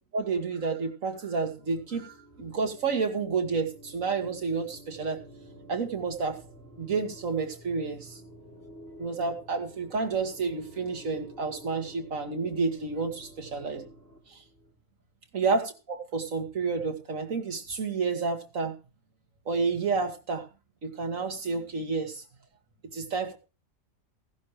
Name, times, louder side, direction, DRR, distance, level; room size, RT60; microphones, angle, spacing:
voice 1, 0.1-5.2 5.7-6.4 6.8-8.2 9.0-13.8 14.3-14.4 15.3-18.7 19.5-20.5 20.8-22.2 22.9-23.4, right 4 dB, 75° right, 5 dB, 2.2 m, -30 dB
sound 1, 1.1-14.7, equal, 5° left, 5.5 m, -51 dB
15.5 x 11.5 x 3.2 m, 0.32 s
omnidirectional pair, 1.4 m